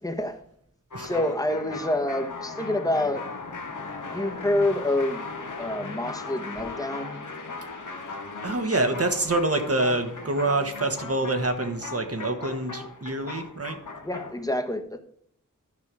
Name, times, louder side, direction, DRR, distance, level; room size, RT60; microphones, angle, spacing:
voice 1, 0.0-0.4 1.0-3.2 4.0-5.3 5.6-7.2 14.0-15.0, left 1 dB, 10° left, 6 dB, 1.2 m, -27 dB
sound 1, 0.9-14.4, left 3 dB, 70° left, 1.5 m, -38 dB
voice 2, 0.9-1.3 7.9-8.0 8.4-13.8, right 2 dB, 50° right, 7 dB, 1.3 m, -26 dB
11.0 x 5.6 x 4.8 m, 0.69 s
wide cardioid pair, 75°, 31 cm